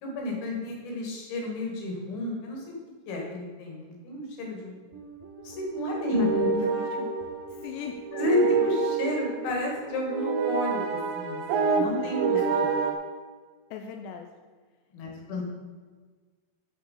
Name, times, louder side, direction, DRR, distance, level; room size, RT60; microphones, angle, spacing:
voice 1, 0.0-2.8 3.1-4.8 5.4-6.6 6.9-7.0 8.1-12.8 14.9-15.4, left 2 dB, 55° left, -1 dB, 3.8 m, -31 dB
sound 1, 4.9-12.9, right 5 dB, 80° right, 2.0 m, -28 dB
voice 2, 6.2-6.9 7.5-8.3 8.6-8.7 12.0-12.4 13.7-14.3 15.1-15.4, left 8 dB, 80° left, 4 dB, 2.6 m, -40 dB
12.5 x 5.3 x 6.7 m, 1.4 s
omnidirectional pair, 5.6 m